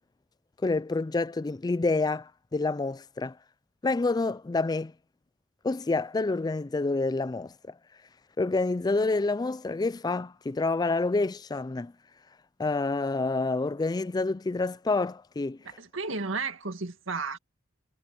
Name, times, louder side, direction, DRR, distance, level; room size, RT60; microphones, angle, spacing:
voice 1, 0.6-3.4 3.8-4.9 5.6-7.7 8.4-11.9 12.6-15.6, left 3 dB, 20° left, 0.4 m, -28 dB
voice 2, 15.6-17.4, right 4 dB, 85° right, 2.1 m, -33 dB
head